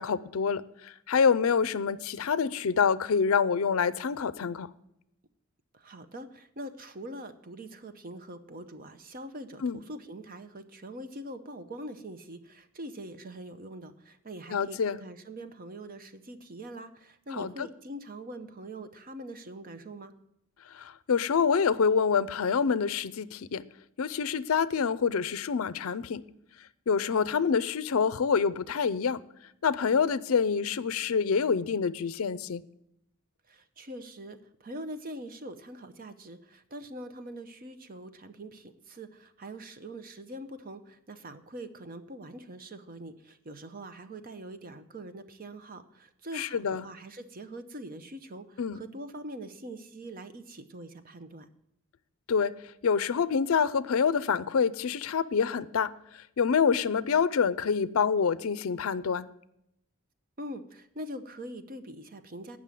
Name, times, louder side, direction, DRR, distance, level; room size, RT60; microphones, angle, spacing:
voice 1, 0.0-4.7 9.6-9.8 14.5-15.0 17.4-17.5 20.7-23.6 24.0-26.2 26.9-29.2 29.6-32.6 46.3-46.9 48.6-48.8 52.3-52.5 52.8-59.3, left 6 dB, 70° left, 0.5 m, -26 dB
voice 2, 5.7-20.1 33.5-51.5 60.4-62.6, right 1 dB, 40° right, 0.7 m, -43 dB
9.0 x 6.1 x 8.3 m
head